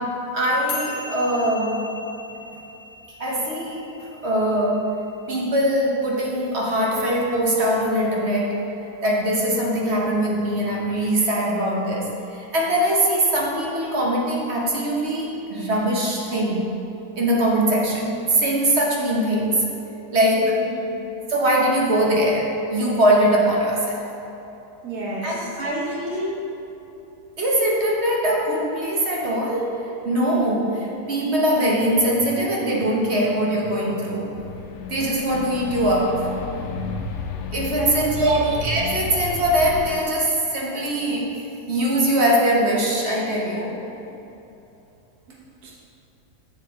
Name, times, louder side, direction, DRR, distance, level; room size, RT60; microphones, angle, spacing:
voice 1, 0.3-1.9 3.2-3.9 4.2-4.9 5.3-8.6 9.0-16.7 17.2-19.7 20.1-20.5 21.3-24.0 25.2-26.5 27.4-29.7 30.0-34.3 34.9-36.3 36.6-37.1 37.5-41.3 41.7-43.7, right 1 dB, 45° right, -3 dB, 1.2 m, -22 dB
sound 1, 0.7-7.3, left 2 dB, 50° left, 1.2 m, -39 dB
voice 2, 20.3-20.9 24.8-25.4 37.8-38.0 38.3-38.4 45.6-45.7, right 3 dB, 65° right, -6 dB, 1.9 m, -30 dB
sound 2, 34.4-40.0, left 7 dB, 65° left, 0.7 m, -33 dB
7.4 x 7.3 x 3.6 m, 2.9 s
omnidirectional pair, 1.7 m